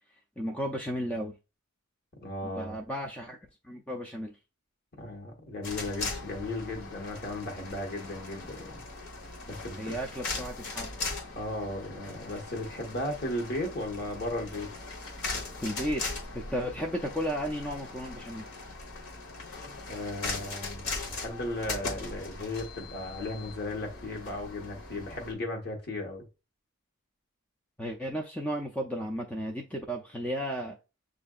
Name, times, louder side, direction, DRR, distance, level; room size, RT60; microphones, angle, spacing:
voice 1, 0.4-1.3 2.4-3.4 3.6-4.4 9.8-10.9 15.6-16.0 16.3-18.4 27.8-30.8, equal, 5° left, 0.3 m, -34 dB
voice 2, 2.2-2.7 5.0-8.8 9.5-9.9 11.3-14.7 19.6-26.2, left 1 dB, 45° left, 1.2 m, -36 dB
sound 1, 5.6-25.3, left 3 dB, 85° left, 1.2 m, -39 dB
7.4 x 2.5 x 2.3 m
head